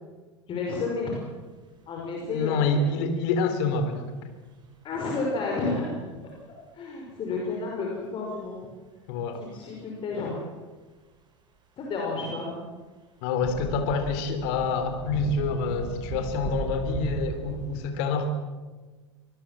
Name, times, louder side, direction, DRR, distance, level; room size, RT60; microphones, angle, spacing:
voice 1, 0.5-1.1 1.9-2.9 4.8-6.0 6.5-8.7 9.3-10.4 11.8-12.5, left 3 dB, 30° left, -1 dB, 5.8 m, -31 dB
voice 2, 2.2-4.3 9.1-9.4 13.2-18.4, left 4 dB, 50° left, 8 dB, 3.7 m, -27 dB
sound 1, 8.3-8.4 9.6-9.7 13.4-17.8, right 5 dB, 30° right, 6.8 m, -35 dB
25.0 x 20.0 x 7.6 m, 1.3 s
figure-of-eight pair, 80°, 16 cm